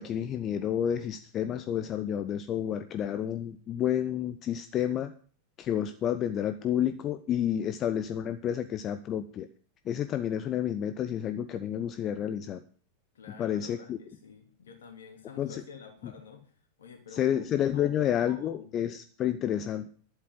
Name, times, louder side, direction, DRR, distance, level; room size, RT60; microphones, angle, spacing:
voice 1, 0.0-5.1 5.6-9.5 9.8-12.6 13.4-14.0 15.4-15.6 17.1-19.9, left 10 dB, 30° left, 11 dB, 0.7 m, -30 dB
voice 2, 13.1-16.4 16.8-17.4 17.7-18.8, left 6 dB, 65° left, 4 dB, 3.0 m, -49 dB
11.0 x 8.3 x 7.7 m, 0.44 s
figure-of-eight pair, 90°, 0 cm